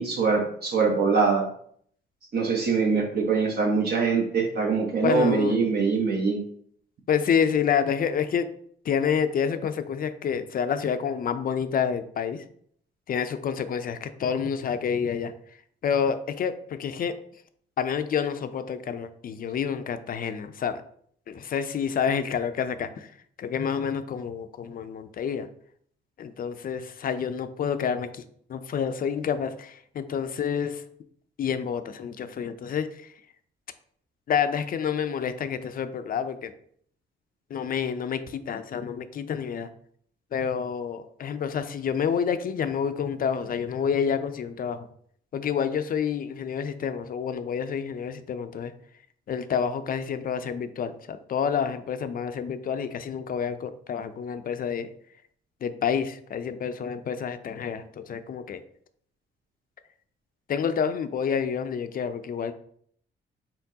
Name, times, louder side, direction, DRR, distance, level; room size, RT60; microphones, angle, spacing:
voice 1, 0.0-1.5 2.3-6.4, right 4 dB, 55° right, 0 dB, 0.9 m, -23 dB
voice 2, 5.0-5.6 7.1-8.5 8.8-12.4 13.1-15.6 15.8-17.1 17.8-20.8 21.3-25.5 26.2-28.2 28.5-30.8 31.4-33.1 34.3-36.5 37.5-39.7 40.3-44.9 45.3-48.7 49.3-54.9 55.6-58.6 60.5-62.5, left 7 dB, 45° left, 10 dB, 0.4 m, -28 dB
4.4 x 3.8 x 2.7 m, 0.62 s
cardioid pair, 90°, 20 cm